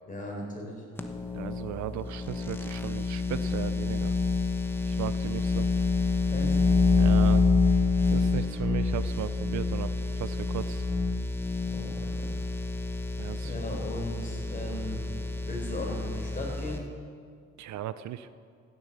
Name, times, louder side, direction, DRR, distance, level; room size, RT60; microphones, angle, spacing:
voice 1, 0.0-0.8 6.3-6.6 11.6-12.3 13.4-15.0 15.5-16.8, left 1 dB, 25° left, -1 dB, 4.4 m, -37 dB
sound 1, 1.0-16.8, left 3 dB, 5° left, 1.0 m, -27 dB
voice 2, 1.3-4.1 4.9-5.7 6.9-7.5 8.1-10.9 13.2-13.5 17.6-18.3, right 11 dB, 70° right, 14 dB, 0.6 m, -36 dB
16.0 x 7.5 x 6.8 m, 2.1 s
cardioid pair, 90°, 30 cm